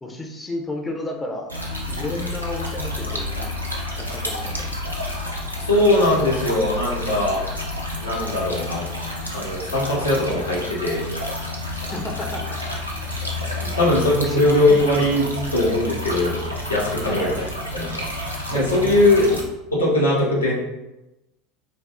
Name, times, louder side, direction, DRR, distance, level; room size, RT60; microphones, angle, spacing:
voice 1, 0.0-1.5 1.9-3.5 3.9-4.8 11.8-12.6 13.9-14.0 14.2-14.6 17.1-17.5 18.5-18.7 19.2-19.4, left 2 dB, 15° left, 1 dB, 0.6 m, -32 dB
sound 1, 1.5-19.4, left 1 dB, 90° right, 0.5 m, -30 dB
voice 2, 5.6-7.4 8.0-8.8 9.3-11.1 13.5-15.3 15.5-16.4 16.7-17.3 17.7-18.0 18.5-19.3 19.7-20.5, left 2 dB, 85° left, -6 dB, 1.0 m, -20 dB
5.2 x 2.4 x 2.4 m, 0.99 s
figure-of-eight pair, 75°, 0 cm